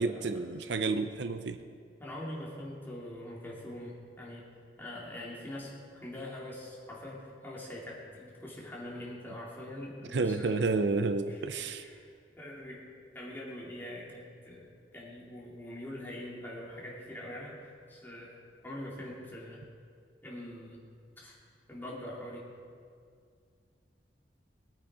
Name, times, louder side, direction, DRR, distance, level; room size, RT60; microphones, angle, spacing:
voice 1, 0.0-1.6 10.1-11.9, right 3 dB, 70° right, 10 dB, 0.6 m, -30 dB
voice 2, 2.0-4.5 4.8-10.6 11.3-11.4 11.8-12.1 12.3-12.9 13.1-14.7 14.9-18.3 18.6-19.6 20.2-20.8 21.2-21.3 21.7-22.5, left 1 dB, 10° left, -5 dB, 2.9 m, -43 dB
20.5 x 8.9 x 5.0 m, 2.2 s
head